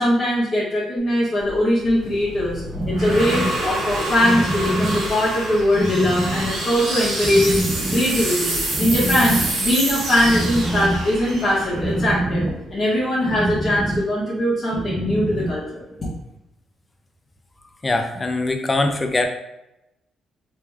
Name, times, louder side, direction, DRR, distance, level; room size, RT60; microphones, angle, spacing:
voice 1, 0.0-7.6 7.9-12.5 12.7-15.8, left 1 dB, 40° left, -9 dB, 1.2 m, -21 dB
sound 1, 1.5-12.7, right 1 dB, 80° right, 1.4 m, -27 dB
sound 2, 2.5-16.1, right 1 dB, 35° right, 0.9 m, -27 dB
voice 2, 17.8-19.3, left 2 dB, 25° left, 5 dB, 0.5 m, -22 dB
3.2 x 3.1 x 3.4 m, 0.90 s
cardioid pair, 90°, 0 cm